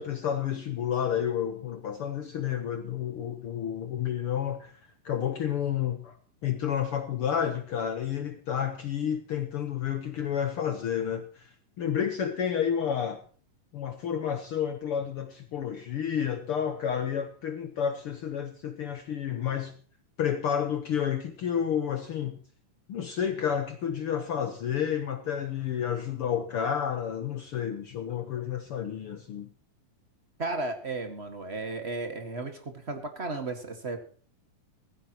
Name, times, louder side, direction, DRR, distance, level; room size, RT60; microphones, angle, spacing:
voice 1, 0.0-4.7 5.0-6.2 6.4-11.5 11.8-13.2 13.7-19.7 20.2-22.4 22.9-29.5, left 8 dB, 70° left, 8 dB, 1.3 m, -30 dB
voice 2, 30.4-34.0, right 3 dB, 30° right, 6 dB, 1.1 m, -34 dB
16.0 x 14.5 x 3.0 m, 0.43 s
omnidirectional pair, 3.9 m